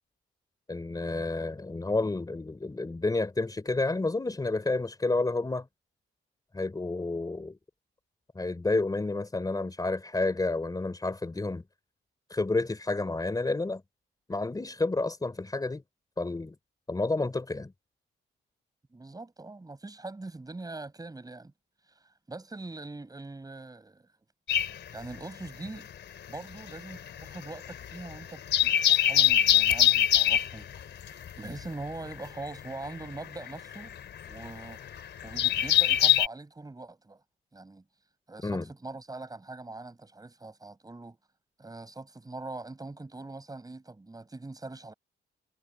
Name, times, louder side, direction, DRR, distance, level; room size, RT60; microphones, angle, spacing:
voice 1, 0.7-5.7 6.5-7.6 8.4-11.6 12.3-13.8 14.3-15.8 16.2-16.5 16.9-17.7 38.4-38.7, left 2 dB, 20° left, 3.7 m, -30 dB
voice 2, 18.9-21.5 21.9-24.1 24.9-25.9 26.3-30.7 31.0-33.9 34.3-37.2 37.5-37.8 38.3-41.2 41.6-44.9, right 2 dB, 20° right, 7.7 m, -42 dB
sound 1, 24.5-25.9 26.2-36.3, left 11 dB, 65° left, 3.7 m, -25 dB
cardioid pair, 90°, 20 cm